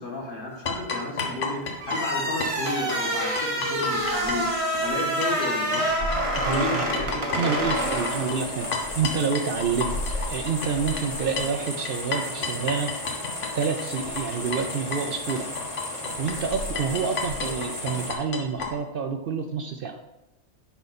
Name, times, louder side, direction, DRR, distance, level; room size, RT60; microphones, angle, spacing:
voice 1, 0.0-6.1 6.5-7.9, left 2 dB, 45° left, -2 dB, 1.8 m, -33 dB
sound 1, 0.7-5.5 5.7-18.7, left 4 dB, 90° left, 1.4 m, -32 dB
sound 2, 1.8-8.8, right 1 dB, 30° right, 0.9 m, -27 dB
voice 2, 6.4-6.8 7.4-8.7 8.9-10.0 10.3-12.9 13.5-15.5 16.2-20.0, right 6 dB, 60° right, 6 dB, 0.7 m, -28 dB
sound 3, 7.7-18.1, left 1 dB, 30° left, 1.2 m, -35 dB
10.0 x 3.9 x 4.1 m, 0.95 s
omnidirectional pair, 1.2 m